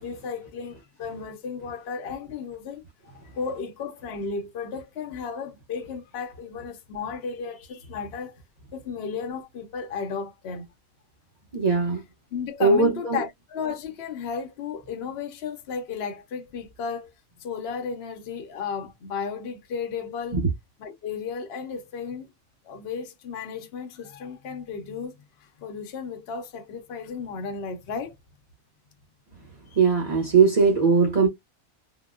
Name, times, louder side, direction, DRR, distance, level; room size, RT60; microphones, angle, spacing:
voice 1, 0.0-2.8 3.1-8.4 8.7-10.7 12.3-17.1 17.4-20.4 20.8-22.3 22.6-28.1 29.7-29.8, left 6 dB, 60° left, 0.8 m, -34 dB
voice 2, 11.5-12.0 12.6-13.2 20.3-20.5 29.8-31.3, right 5 dB, 35° right, 0.8 m, -20 dB
3.8 x 2.1 x 2.3 m
omnidirectional pair, 1.4 m